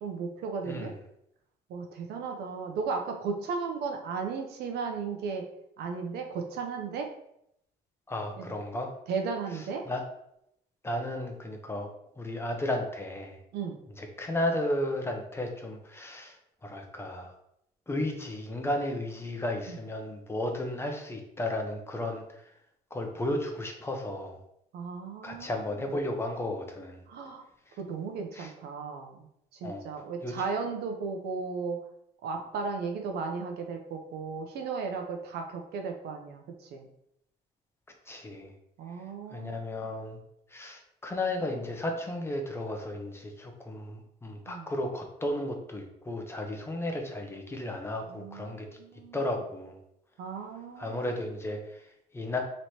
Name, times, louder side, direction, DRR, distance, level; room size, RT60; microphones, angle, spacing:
voice 1, 0.0-0.9 1.7-5.4 5.8-7.1 8.4-8.5 9.1-9.9 13.5-13.8 19.7-19.8 24.7-25.7 27.1-27.4 27.8-29.3 29.5-31.8 32.2-36.9 38.8-39.9 44.5-44.7 48.1-49.3 50.2-51.2, right 5 dB, 75° right, 3 dB, 0.8 m, -35 dB
voice 2, 8.1-8.9 9.9-10.0 10.8-11.9 12.2-13.4 14.0-16.4 16.6-17.3 17.9-22.5 22.9-24.4 25.2-27.0 27.7-27.8 28.4-28.5 29.6-29.8 30.2-30.4 38.1-38.5 39.3-40.2 40.5-48.7 49.1-49.8 50.8-52.4, left 1 dB, 15° left, 3 dB, 0.7 m, -34 dB
3.2 x 3.1 x 4.2 m, 0.76 s
cardioid pair, 110°, 17 cm